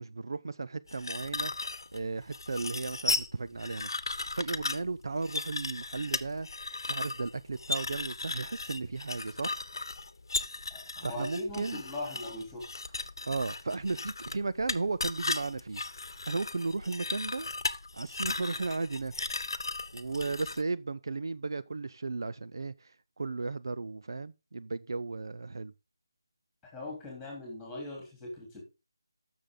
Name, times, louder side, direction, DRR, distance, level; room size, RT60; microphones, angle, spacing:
voice 1, 0.0-1.5 1.9-3.9 4.4-6.5 6.8-9.6 11.0-11.8 13.2-15.8 16.3-17.5 17.9-19.1 19.9-25.7, right 3 dB, 60° right, 0.5 m, -35 dB
sound 1, 0.9-20.6, left 3 dB, 70° left, 0.9 m, -36 dB
voice 2, 10.7-12.6 26.7-28.6, left 2 dB, 5° left, 3.4 m, -40 dB
13.5 x 6.6 x 3.8 m
figure-of-eight pair, 175°, 2 cm